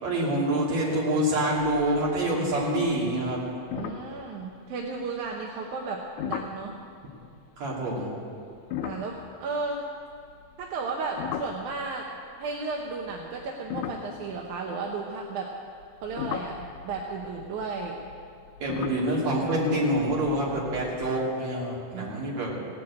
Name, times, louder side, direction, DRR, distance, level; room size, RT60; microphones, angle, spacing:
voice 1, 0.0-3.4 7.6-8.1 18.6-22.5, right 1 dB, 50° right, -5 dB, 4.0 m, -26 dB
sound 1, 2.1-2.2 2.5-2.9 3.3-3.4 3.7-5.0 6.2-6.6 8.6-12.2 12.9-15.1 15.8-21.1, left 10 dB, 85° left, 1.7 m, -38 dB
voice 2, 3.8-6.8 8.8-9.8 10.6-12.1 12.4-15.5 16.0-18.0 21.9-22.7, right 4 dB, 70° right, 0 dB, 2.1 m, -34 dB
17.5 x 7.9 x 8.5 m, 2.3 s
omnidirectional pair, 4.2 m